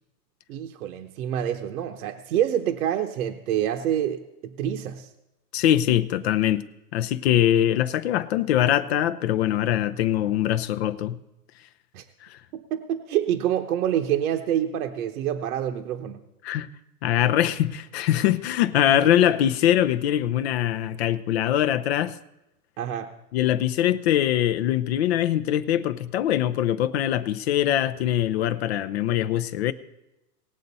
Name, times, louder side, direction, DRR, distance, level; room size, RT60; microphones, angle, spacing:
voice 1, 0.5-5.1 11.9-12.0 12.5-16.2 22.8-23.1, right 10 dB, 65° right, 1.0 m, -27 dB
voice 2, 5.5-6.7 6.9-11.2 12.2-12.4 16.4-16.7 17.0-22.2 23.3-29.7, left 11 dB, 45° left, 0.5 m, -23 dB
19.0 x 7.6 x 4.1 m
hypercardioid pair, 140°, 48 cm